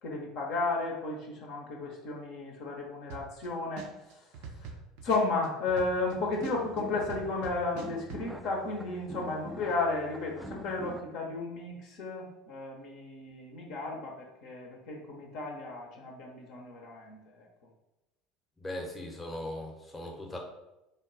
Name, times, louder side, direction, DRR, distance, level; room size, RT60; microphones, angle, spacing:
voice 1, 0.0-4.8 5.0-17.5, left 3 dB, 55° left, -1 dB, 0.7 m, -34 dB
sound 1, 3.1-3.5 3.8-6.1 6.4-8.2, right 5 dB, 65° right, 0.5 m, -43 dB
sound 2, 5.7-11.0, equal, 5° right, 0.4 m, -45 dB
voice 2, 18.6-20.4, left 1 dB, 15° left, 1 dB, 0.8 m, -39 dB
3.7 x 2.2 x 3.9 m, 0.96 s
figure-of-eight pair, 70°, 0 cm